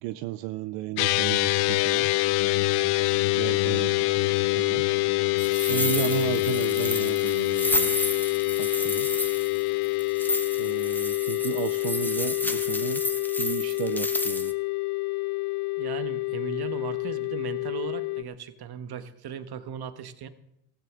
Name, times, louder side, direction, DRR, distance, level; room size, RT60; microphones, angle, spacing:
voice 1, 0.0-2.1 3.4-4.8 5.7-8.0 8.6-9.1 10.6-13.0 13.4-14.5, right 16 dB, 85° right, 13 dB, 0.6 m, -34 dB
sound 1, 1.0-18.2, left 21 dB, 80° left, 0.7 m, -26 dB
sound 2, 5.4-14.5, left 1 dB, 5° left, 0.9 m, -31 dB
voice 2, 15.8-20.3, right 8 dB, 50° right, 11 dB, 1.3 m, -37 dB
15.0 x 14.5 x 3.7 m, 0.82 s
supercardioid pair, 80°, 48 cm